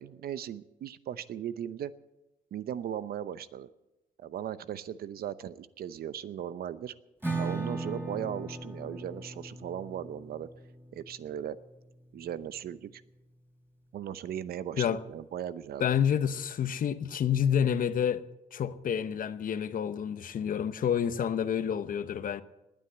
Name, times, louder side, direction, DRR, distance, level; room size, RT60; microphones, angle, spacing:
voice 1, 0.0-1.9 2.5-3.7 4.2-6.9 7.4-10.5 10.9-11.6 12.1-13.0 13.9-15.9, right 10 dB, 80° right, 0.8 m, -37 dB
Acoustic guitar / Strum, 7.2-12.7, right 3 dB, 15° right, 3.7 m, -38 dB
voice 2, 15.8-18.2 18.5-22.4, left 8 dB, 65° left, 0.9 m, -29 dB
19.5 x 8.9 x 7.9 m
cardioid pair, 110°, 16 cm